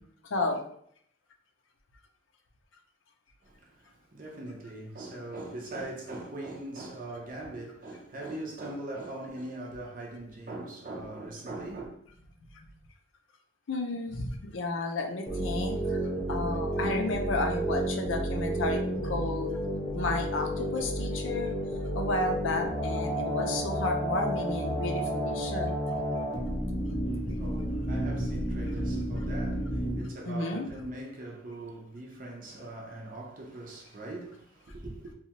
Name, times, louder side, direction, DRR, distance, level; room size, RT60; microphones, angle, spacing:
voice 1, 0.2-0.6 12.4-12.7 13.7-16.0 16.3-19.6 19.9-21.5 21.9-26.0 26.5-26.8 27.2-27.6 28.7-28.8 29.1-29.2 29.8-29.9 30.2-30.7, left 2 dB, 75° left, 0.5 m, -33 dB
voice 2, 3.4-11.9 27.1-35.1, right 2 dB, 40° right, 0.6 m, -41 dB
sound 1, 15.3-30.0, right 1 dB, 20° left, 0.4 m, -31 dB
2.7 x 2.3 x 2.9 m
head